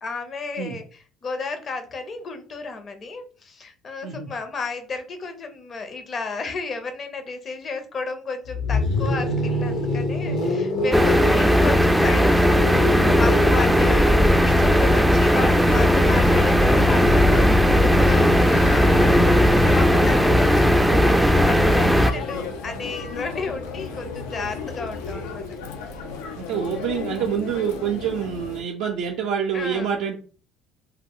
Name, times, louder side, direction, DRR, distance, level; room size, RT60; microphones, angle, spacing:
voice 1, 0.0-12.5 13.1-14.1 14.4-25.4 29.5-30.0, left 4 dB, 40° left, 7 dB, 0.7 m, -32 dB
sound 1, 8.4-20.4 21.7-25.3, left 1 dB, 70° left, 0.9 m, -29 dB
sound 2, 10.9-22.1, equal, 5° right, 0.3 m, -17 dB
sound 3, 15.7-28.6, left 4 dB, 85° left, 0.4 m, -33 dB
voice 2, 26.4-30.2, right 8 dB, 75° right, 0 dB, 0.4 m, -27 dB
2.2 x 2.1 x 3.5 m, 0.39 s
supercardioid pair, 75°, 0 cm